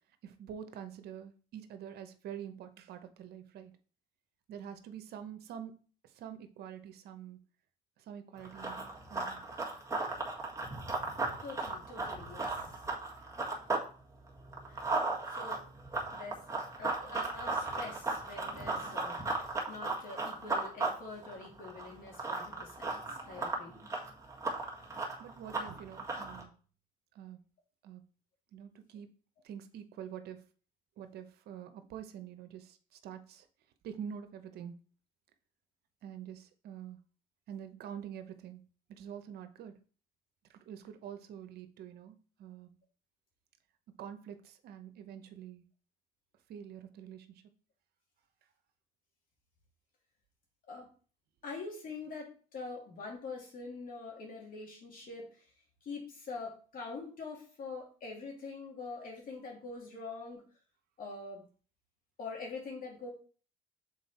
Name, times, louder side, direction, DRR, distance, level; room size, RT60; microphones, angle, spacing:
voice 1, 0.2-3.8 4.5-5.8 6.0-7.4 8.0-9.4 25.2-26.5 27.1-27.4 27.8-28.0 28.5-29.1 29.4-30.5 31.0-33.5 33.8-34.8 36.0-37.0 37.5-38.6 38.9-39.7 40.5-42.8 44.0-45.6 46.5-47.4, right 9 dB, 70° right, 9 dB, 0.9 m, -46 dB
Run, 8.4-13.9 14.2-26.4, right 3 dB, 15° right, 1.7 m, -36 dB
voice 2, 11.4-12.5 14.7-14.9 15.3-15.6 16.1-16.4 16.8-19.2 19.7-23.9 50.7-50.9 51.4-55.3 55.8-60.4 61.0-61.4 62.2-63.1, left 4 dB, 55° left, 0 dB, 2.6 m, -44 dB
6.3 x 4.1 x 4.2 m, 0.40 s
cardioid pair, 110°, 17 cm